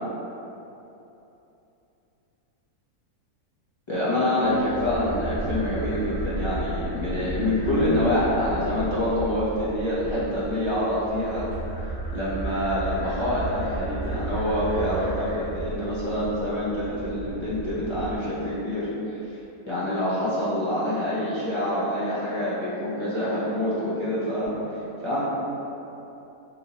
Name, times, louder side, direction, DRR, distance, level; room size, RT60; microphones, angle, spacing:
voice 1, 3.9-11.5 12.1-19.4 19.7-24.5 25.0-25.2, left 1 dB, 35° left, -11 dB, 0.4 m, -26 dB
sound 1, 4.4-18.2, right 2 dB, 20° left, 0.8 m, -34 dB
4.3 x 2.9 x 2.8 m, 3.0 s
omnidirectional pair, 1.7 m